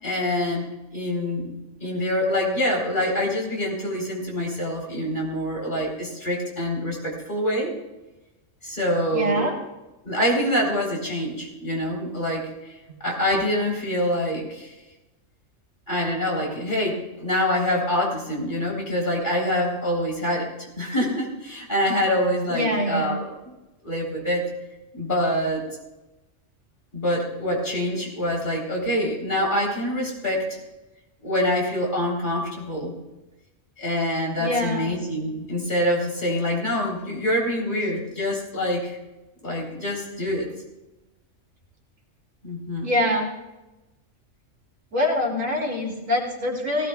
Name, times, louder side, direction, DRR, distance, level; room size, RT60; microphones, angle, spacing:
voice 1, 0.0-0.7 0.9-1.5 1.8-7.7 8.6-9.5 10.0-12.8 13.0-14.7 15.9-20.5 20.8-23.3 23.8-24.4 24.9-25.6 26.9-30.5 31.2-33.0 33.8-39.0 39.4-40.5 42.4-42.9, left 1 dB, 40° left, -3 dB, 3.8 m, -25 dB
voice 2, 9.1-9.5 22.5-23.2 34.4-34.9 42.8-43.3 44.9-46.9, left 1 dB, 85° right, -2 dB, 3.0 m, -24 dB
18.5 x 16.5 x 2.3 m, 1.0 s
omnidirectional pair, 1.3 m